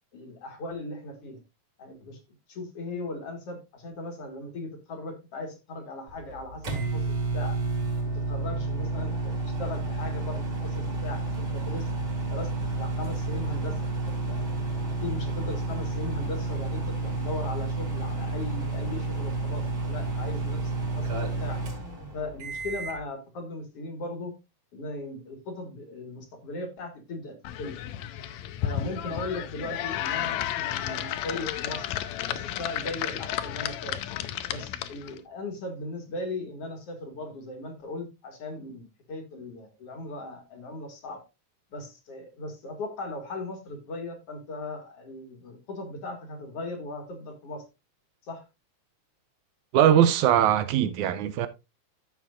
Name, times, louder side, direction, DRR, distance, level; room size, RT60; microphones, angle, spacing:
voice 1, 0.1-1.4 1.8-2.2 2.5-7.6 8.0-11.9 12.3-12.5 12.8-13.8 14.1-14.5 15.0-21.1 21.4-21.6 22.1-24.3 24.7-27.8 28.6-31.9 32.3-34.0 34.5-41.2 41.7-47.6 48.2-48.4, left 2 dB, 55° left, 2.6 m, -38 dB
sound 1, 6.1-23.0, right 3 dB, 45° right, 4.0 m, -30 dB
sound 2, 27.4-35.2, left 12 dB, 75° left, 1.9 m, -32 dB
voice 2, 49.7-51.5, right 10 dB, 80° right, 2.0 m, -21 dB
12.5 x 7.4 x 2.5 m
omnidirectional pair, 3.6 m